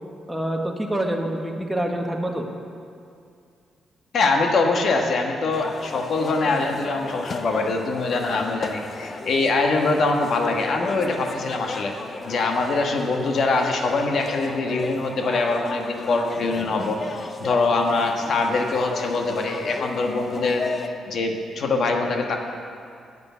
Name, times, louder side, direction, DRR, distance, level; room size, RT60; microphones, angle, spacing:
voice 1, 0.3-2.5, right 1 dB, 5° right, 1 dB, 1.2 m, -26 dB
voice 2, 4.1-11.9 12.2-17.0 17.4-22.4, left 3 dB, 65° left, 3 dB, 1.3 m, -23 dB
sound 1, 5.5-20.9, left 3 dB, 40° left, 0.7 m, -35 dB
10.5 x 6.8 x 7.2 m, 2.4 s
cardioid pair, 85°, 0 cm